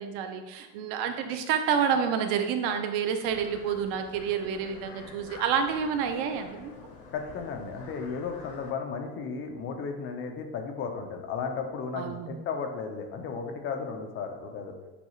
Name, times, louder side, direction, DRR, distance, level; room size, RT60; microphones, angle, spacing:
voice 1, 0.0-6.7 11.9-12.4, right 7 dB, 90° right, 7 dB, 0.6 m, -29 dB
sound 1, 3.2-8.7, left 4 dB, 75° left, 0.9 m, -47 dB
voice 2, 7.1-14.8, left 5 dB, 45° left, 5 dB, 0.6 m, -34 dB
6.8 x 2.4 x 3.1 m, 1.1 s
cardioid pair, 155°, 30 cm